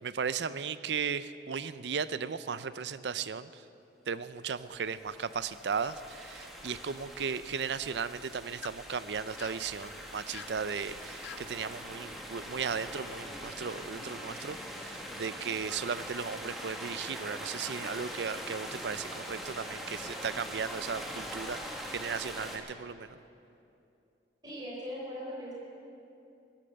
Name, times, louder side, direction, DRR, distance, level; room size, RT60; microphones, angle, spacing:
voice 1, 0.0-3.6 4.1-21.6 21.9-23.2, right 6 dB, 80° right, 14 dB, 0.5 m, -36 dB
sound 1, 4.6-22.6, equal, ahead, 1.6 m, -43 dB
sound 2, 5.0-5.6 5.8-6.5 8.4-8.8 9.4-9.7 10.3-10.6 11.2-11.5, left 9 dB, 85° left, 0.4 m, -48 dB
voice 2, 24.4-25.5, equal, 25° right, -5 dB, 4.3 m, -39 dB
16.5 x 12.0 x 6.8 m, 2.7 s
head